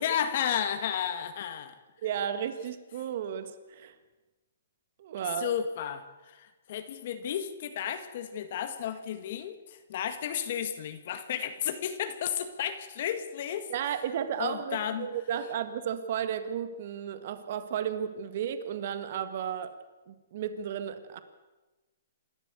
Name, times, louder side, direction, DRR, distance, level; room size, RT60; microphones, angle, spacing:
voice 1, 0.0-1.7 5.4-13.7 14.4-15.1, left 9 dB, 50° left, 8 dB, 1.8 m, -33 dB
voice 2, 2.0-3.9 5.0-5.5 13.7-19.7 20.1-21.2, right 9 dB, 50° right, 11 dB, 1.8 m, -33 dB
28.0 x 13.0 x 8.3 m, 1.2 s
hypercardioid pair, 160°, 0 cm